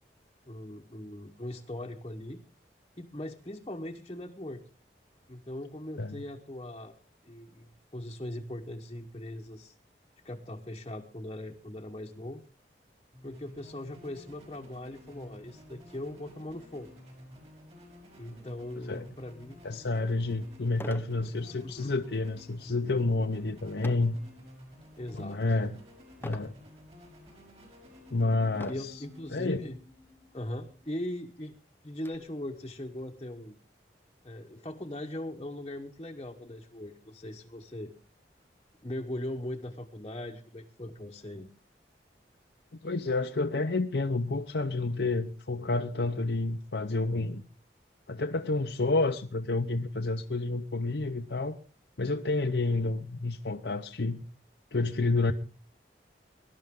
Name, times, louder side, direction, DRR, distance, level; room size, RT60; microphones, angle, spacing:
voice 1, 0.4-2.4 3.0-4.6 5.3-7.0 7.3-9.7 10.2-12.4 13.2-16.9 18.2-19.6 21.6-21.9 25.0-25.6 27.8-27.9 28.7-29.8 30.3-31.6 31.8-33.6 34.2-37.9 38.8-41.5, left 1 dB, 30° left, 1 dB, 1.1 m, -40 dB
sound 1, 13.1-30.9, left 1 dB, 35° right, 5.7 m, -53 dB
voice 2, 19.6-24.2 25.1-25.8 26.2-26.5 28.1-29.0 29.3-29.6 42.8-47.4 48.1-51.6 52.0-54.2 54.7-55.3, left 3 dB, 75° left, 4 dB, 0.8 m, -29 dB
sound 2, 19.8-19.9 20.7-21.2 21.6-21.9 23.8-24.2 24.8-25.2 26.2-26.6 27.3-27.4 28.5-29.0 30.0-30.2 30.5-30.6 31.0-32.1, left 1 dB, 10° left, 0.7 m, -43 dB
23.0 x 12.0 x 3.7 m, 0.38 s
head